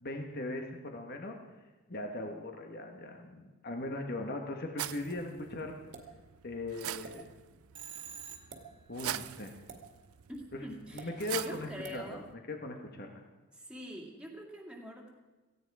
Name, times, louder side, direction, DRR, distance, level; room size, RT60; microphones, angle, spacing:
voice 1, 0.0-1.4 1.9-5.8 6.4-7.3 8.9-9.5 10.5-10.6 10.9-12.2 12.5-13.2, left 2 dB, 45° left, 3 dB, 1.5 m, -39 dB
sound 1, 4.8-12.3, right 12 dB, 90° right, 0.5 m, -44 dB
sound 2, 5.9-6.2 7.0-7.2 8.4-8.6 9.7-9.9 11.0-11.1 11.8-12.0, right 4 dB, 55° right, 2.1 m, -48 dB
Telephone, 7.8-8.8, right 8 dB, 25° right, 1.7 m, -46 dB
voice 2, 10.3-12.2 13.5-15.1, equal, 5° right, 0 dB, 2.3 m, -45 dB
17.5 x 15.5 x 4.9 m, 1.2 s
head